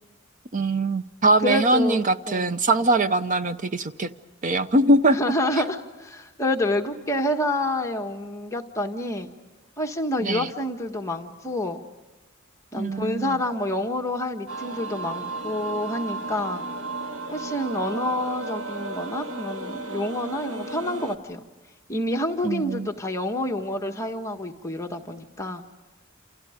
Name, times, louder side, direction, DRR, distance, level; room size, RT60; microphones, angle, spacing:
voice 1, 0.5-4.1 4.4-5.2 10.2-10.5 12.7-13.4 22.4-22.9, right 2 dB, 40° right, 11 dB, 0.8 m, -22 dB
voice 2, 1.4-2.0 2.3-2.6 5.1-9.3 9.8-11.8 12.7-16.6 17.3-21.4 21.9-25.6, left 1 dB, 15° left, 3 dB, 1.4 m, -28 dB
sound 1, 14.5-21.2, right 2 dB, 75° right, 2.1 m, -34 dB
29.0 x 28.0 x 5.1 m, 1.1 s
head